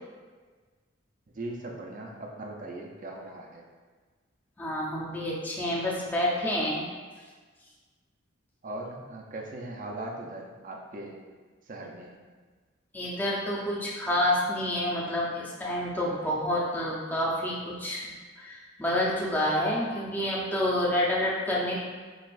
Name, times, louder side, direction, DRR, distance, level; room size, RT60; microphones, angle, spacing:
voice 1, 1.3-3.7 8.6-11.2 11.7-12.2, right 2 dB, 45° right, 0 dB, 0.5 m, -39 dB
voice 2, 4.6-6.9 12.9-21.8, left 1 dB, 10° left, -5 dB, 0.6 m, -28 dB
6.2 x 2.4 x 2.5 m, 1.4 s
head